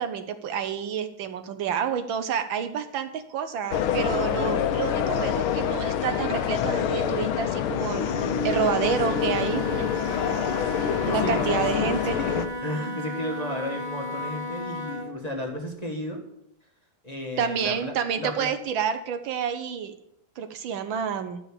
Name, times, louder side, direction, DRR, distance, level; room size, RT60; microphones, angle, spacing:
voice 1, 0.0-9.9 11.0-12.2 17.4-19.9 20.4-21.4, right 7 dB, 75° right, 9 dB, 1.5 m, -29 dB
sound 1, 3.7-12.5, left 9 dB, 80° left, 1.6 m, -26 dB
Wind instrument woodwind instrument, 7.9-15.2, left 1 dB, 20° right, 1.3 m, -34 dB
voice 2, 11.0-16.2 17.0-18.5, left 1 dB, 20° left, 0 dB, 1.5 m, -34 dB
12.0 x 5.9 x 7.2 m, 0.77 s
omnidirectional pair, 2.3 m